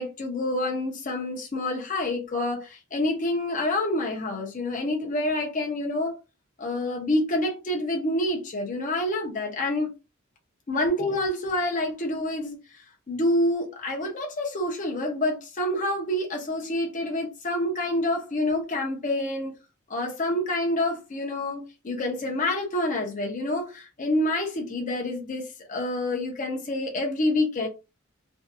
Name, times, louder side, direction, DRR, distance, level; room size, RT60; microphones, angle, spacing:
voice 1, 0.0-6.1 6.6-9.9 10.7-12.6 13.1-19.6 19.9-25.4 25.7-27.7, left 1 dB, 40° left, 0.6 m, -27 dB
2.6 x 2.4 x 2.4 m
head